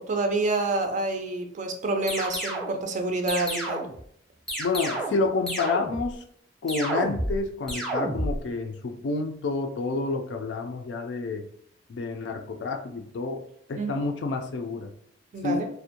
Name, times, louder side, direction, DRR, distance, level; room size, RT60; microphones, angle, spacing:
voice 1, 0.0-3.8 13.8-14.0 15.3-15.7, right 2 dB, 45° right, 5 dB, 0.4 m, -28 dB
sound 1, 2.1-2.8 3.3-4.0 4.5-5.2 5.5-6.1 6.7-7.4 7.7-8.4, right 1 dB, ahead, 0.7 m, -30 dB
voice 2, 4.6-6.2 6.6-11.4 11.9-13.4 13.7-14.9 15.4-15.7, left 3 dB, 70° left, 5 dB, 0.4 m, -29 dB
2.5 x 2.1 x 2.7 m, 0.65 s
head